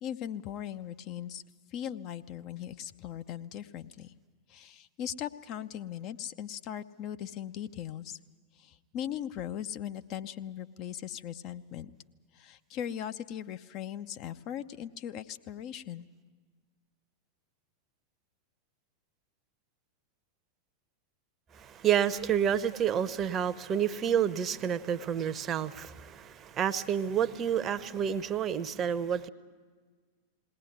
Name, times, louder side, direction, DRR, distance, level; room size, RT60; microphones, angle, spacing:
voice 1, 0.0-1.4 1.7-4.1 4.5-8.2 8.6-11.9 12.3-16.1, left 10 dB, 40° left, 9 dB, 0.6 m, -39 dB
voice 2, 21.5-29.3, right 9 dB, 25° right, 13 dB, 0.8 m, -29 dB
20.0 x 18.0 x 9.4 m, 1.5 s
figure-of-eight pair, 90°, 0 cm